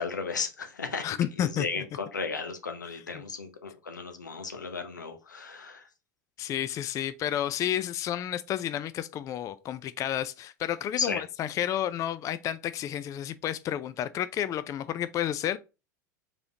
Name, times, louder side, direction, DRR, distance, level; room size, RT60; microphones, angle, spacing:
voice 1, 0.0-1.1 1.4-5.9 11.0-11.2, left 5 dB, 90° left, 0.8 m, -34 dB
voice 2, 1.0-1.8 3.1-3.2 6.4-15.6, left 11 dB, 35° left, 0.4 m, -31 dB
4.9 x 3.7 x 2.8 m
hypercardioid pair, 85°, 10 cm